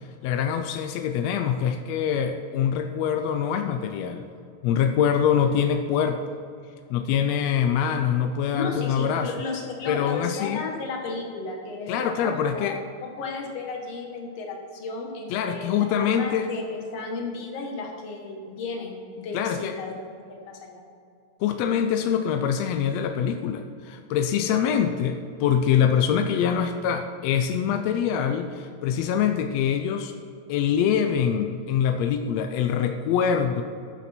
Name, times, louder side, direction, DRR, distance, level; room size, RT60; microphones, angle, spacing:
voice 1, 0.2-4.2 4.6-6.4 6.9-9.3 9.9-10.6 11.9-12.8 15.3-16.5 19.3-19.7 21.4-30.1 30.5-33.6, left 8 dB, 80° left, 6 dB, 1.6 m, -24 dB
voice 2, 8.5-12.8 13.0-19.9 20.3-20.8, left 3 dB, 60° left, 1 dB, 2.3 m, -33 dB
13.5 x 7.1 x 4.4 m, 2.4 s
omnidirectional pair, 3.5 m